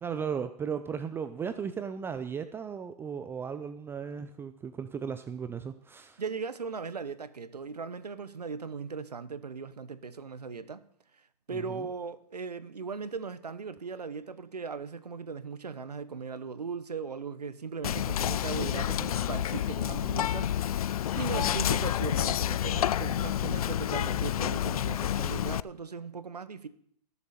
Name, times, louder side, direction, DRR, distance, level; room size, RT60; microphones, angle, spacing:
voice 1, 0.0-6.2 11.5-11.9, right 7 dB, 10° right, 0.5 m, -36 dB
voice 2, 6.2-10.9 11.5-20.5 21.1-26.7, right 5 dB, 85° right, 1.0 m, -38 dB
Whispering, 17.8-25.6, left 11 dB, 65° left, 0.4 m, -29 dB
19.5 x 7.1 x 4.3 m
figure-of-eight pair, 115°, 20 cm